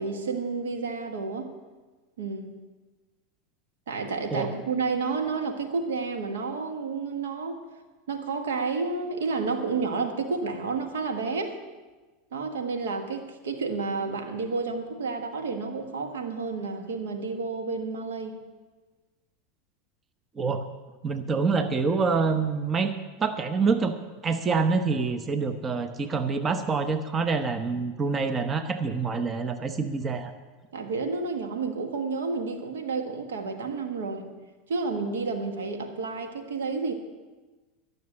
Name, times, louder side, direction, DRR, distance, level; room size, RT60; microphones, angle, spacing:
voice 1, 0.0-1.5 2.2-2.5 3.9-7.6 8.1-11.6 12.3-18.4 30.7-34.3 34.7-36.9, right 4 dB, 80° right, 5 dB, 1.4 m, -30 dB
voice 2, 21.0-22.9 23.2-23.9 24.2-30.3, right 4 dB, 25° right, 9 dB, 0.9 m, -26 dB
12.5 x 6.7 x 9.8 m, 1.3 s
hypercardioid pair, 90°, 0 cm